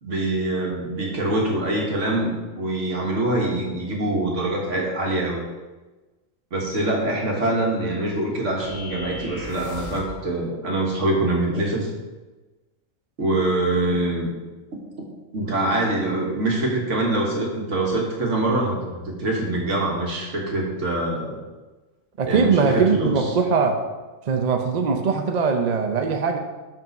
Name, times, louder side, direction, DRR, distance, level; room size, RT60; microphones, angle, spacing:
voice 1, 0.0-5.4 6.5-11.9 13.2-14.3 15.0-15.1 15.3-21.4 22.3-23.3, right 2 dB, 65° right, -1 dB, 1.8 m, -24 dB
sound 1, 8.6-10.2, left 1 dB, 15° left, 1.6 m, -37 dB
voice 2, 22.2-23.8 24.3-26.4, right 5 dB, 45° right, 4 dB, 0.6 m, -21 dB
5.4 x 5.4 x 6.4 m, 1.2 s
omnidirectional pair, 1.4 m